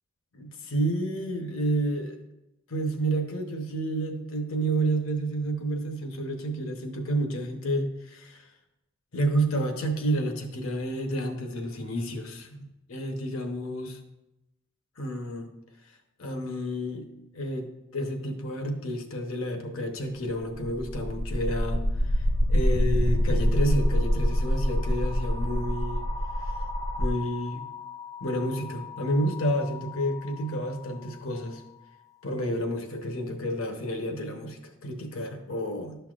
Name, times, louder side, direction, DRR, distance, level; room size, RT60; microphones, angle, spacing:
voice 1, 0.3-2.2 2.7-8.4 9.1-14.0 15.0-15.5 16.2-17.1 17.3-26.0 26.4-26.5 27.0-27.6 28.2-31.6 32.2-36.0, right 1 dB, 80° left, 5 dB, 1.0 m, -30 dB
sound 1, 20.5-30.4, equal, 15° left, 0.4 m, -27 dB
11.5 x 5.7 x 2.5 m, 0.94 s
head